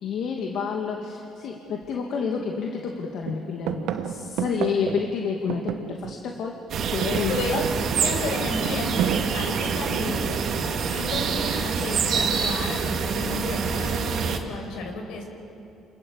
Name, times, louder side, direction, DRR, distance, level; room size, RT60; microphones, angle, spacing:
voice 1, 0.0-6.5 6.9-7.6, left 6 dB, 65° left, 1 dB, 2.4 m, -29 dB
sound 1, 1.8-1.9 2.4-3.0 3.2-6.4 6.7-10.3 11.3-11.7, right 9 dB, 80° right, 1.2 m, -32 dB
sound 2, 6.7-14.4, right 6 dB, 60° right, 2.5 m, -26 dB
voice 2, 7.2-10.4 10.9-15.2, left 2 dB, 80° left, 3 dB, 5.6 m, -32 dB
28.0 x 28.0 x 7.2 m, 2.7 s
cardioid pair, 100°, 0 cm